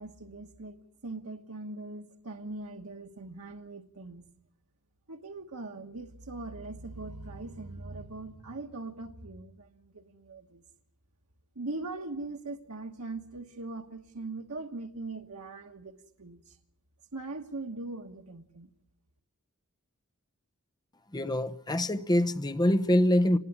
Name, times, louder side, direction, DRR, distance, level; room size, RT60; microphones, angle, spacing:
voice 1, 0.0-4.2 5.1-10.6 11.5-16.6 17.1-18.7, right 2 dB, 85° right, 1.3 m, -41 dB
voice 2, 21.1-23.4, left 1 dB, 20° left, 0.9 m, -25 dB
26.5 x 20.0 x 9.8 m
head